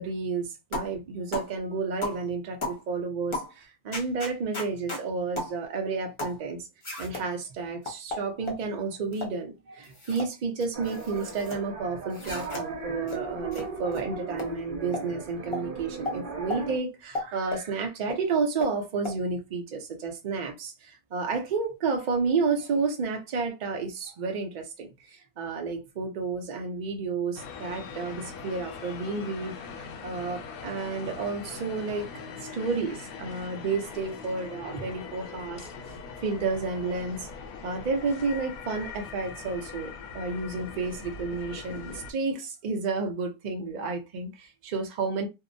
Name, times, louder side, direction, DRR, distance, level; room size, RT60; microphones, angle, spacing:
voice 1, 0.0-6.6 7.0-32.1 32.4-35.7 36.2-37.3 37.6-45.3, right 4 dB, 60° right, 0.4 m, -31 dB
sound 1, 0.7-0.9 1.3-1.5 2.0-2.2 2.6-2.8 3.3-3.5 3.9-5.0 5.4-5.5 6.2-6.4 6.8-7.3 7.9-8.6 9.1-9.4 9.8-10.3 10.6-11.6 12.1-12.6 13.1-13.2 13.5-13.6 13.9-14.0 14.4-14.5 14.9-15.1 15.5-15.6 16.1-16.2 16.5-16.6 17.1-17.7 18.1-18.2 18.6-18.7 19.0-19.2, left 1 dB, 35° left, 0.5 m, -34 dB
sound 2, 10.7-16.8, right 3 dB, 40° right, 1.0 m, -37 dB
sound 3, 27.4-42.1, left 5 dB, 85° left, 1.0 m, -41 dB
2.7 x 2.0 x 2.5 m
omnidirectional pair, 1.5 m